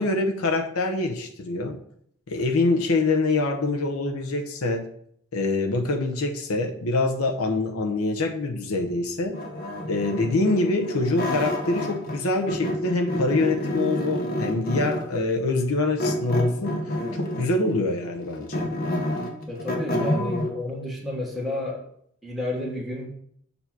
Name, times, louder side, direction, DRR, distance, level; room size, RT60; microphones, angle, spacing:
voice 1, 0.0-1.8 2.3-4.8 5.3-9.4 9.8-18.7, left 2 dB, 75° left, 3 dB, 0.8 m, -25 dB
sound 1, 9.3-12.2 12.5-15.2 16.0-17.6 18.0-20.5, left 1 dB, 45° left, 0.9 m, -28 dB
voice 2, 19.5-21.8 22.2-23.1, left 1 dB, ahead, -3 dB, 1.3 m, -31 dB
6.9 x 2.8 x 5.8 m, 0.68 s
head